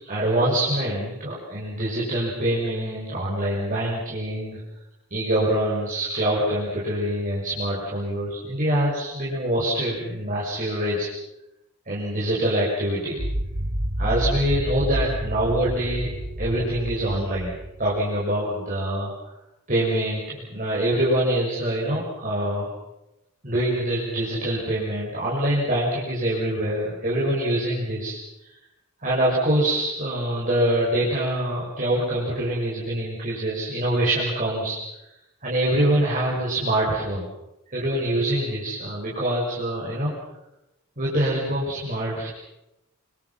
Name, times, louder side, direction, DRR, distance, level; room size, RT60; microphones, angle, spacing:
voice 1, 0.0-4.6 5.1-11.1 11.9-13.2 14.0-16.1 16.4-17.5 17.8-19.1 19.7-22.7 23.4-28.2 29.0-34.8 35.4-37.3 37.7-40.1 41.0-42.3, right 1 dB, 40° right, -6 dB, 6.4 m, -25 dB
sound 1, 13.2-18.0, equal, 60° right, 2.9 m, -29 dB
28.0 x 25.5 x 5.9 m, 0.90 s
head